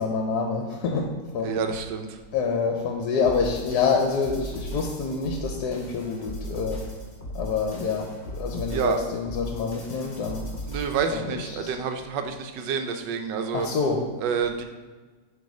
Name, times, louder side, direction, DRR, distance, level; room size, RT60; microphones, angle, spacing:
voice 1, 0.0-1.6 2.3-6.9 7.3-10.5 11.1-11.2 11.5-11.7 13.5-14.0, left 5 dB, 70° left, 2 dB, 1.2 m, -27 dB
voice 2, 1.4-2.2 8.7-9.0 10.7-13.7 14.2-14.6, right 6 dB, 80° right, 6 dB, 1.3 m, -28 dB
sound 1, 3.2-11.2, equal, 30° left, 0.9 m, -37 dB
7.9 x 3.3 x 4.8 m, 1.4 s
omnidirectional pair, 1.9 m